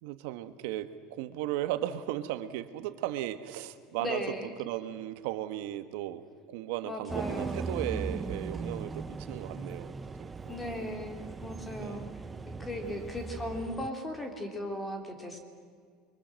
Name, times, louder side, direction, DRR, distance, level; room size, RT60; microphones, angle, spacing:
voice 1, 0.0-4.2 4.6-6.2 6.5-9.9 10.2-10.6 11.8-12.0 12.8-13.0, right 13 dB, 70° right, 10 dB, 1.4 m, -36 dB
voice 2, 4.0-4.5 6.8-7.6 10.5-12.0 12.5-15.4, left 1 dB, 10° left, 5 dB, 3.2 m, -37 dB
sound 1, 7.1-13.9, right 4 dB, 15° right, 0.7 m, -39 dB
29.5 x 23.5 x 7.7 m, 2.1 s
cardioid pair, 165°, 0 cm